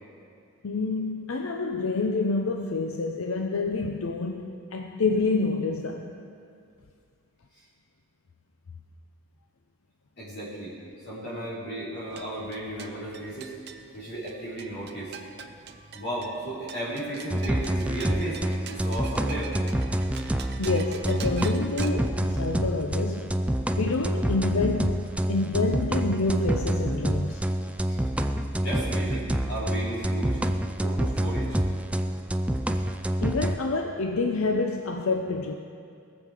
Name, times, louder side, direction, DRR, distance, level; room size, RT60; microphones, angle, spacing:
voice 1, 0.6-6.1 20.6-23.3 23.7-27.4 33.2-35.5, left 3 dB, 75° left, 0.6 m, -28 dB
voice 2, 10.2-10.8 11.0-13.6 13.9-15.2 15.9-19.5 27.8-28.0 28.6-30.4 30.8-31.6 32.7-32.8, right 1 dB, 50° left, 3.8 m, -34 dB
sound 1, 11.9-21.9, right 6 dB, 50° right, 0.7 m, -44 dB
sound 2, 17.3-33.6, right 1 dB, 5° right, 0.3 m, -27 dB
21.0 x 7.2 x 5.0 m
head